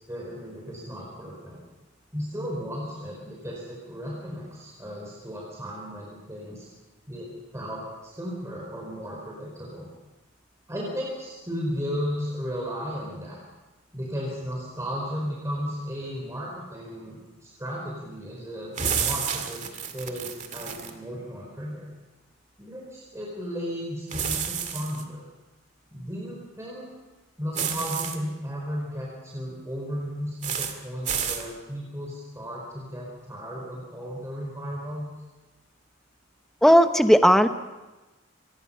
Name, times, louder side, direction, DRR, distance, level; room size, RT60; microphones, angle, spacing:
voice 1, 0.1-1.6 2.1-6.6 7.1-9.9 10.7-13.4 13.9-19.6 19.9-21.9 22.6-25.3 25.9-26.9 27.4-35.1, equal, 15° right, -3 dB, 4.7 m, -35 dB
sound 1, 18.8-20.9 24.1-25.0 27.5-28.2 30.4-30.7 31.1-31.4, right 7 dB, 40° right, 2.1 m, -30 dB
voice 2, 36.6-37.5, equal, ahead, 8 dB, 0.9 m, -16 dB
24.5 x 21.0 x 5.6 m, 1.1 s
head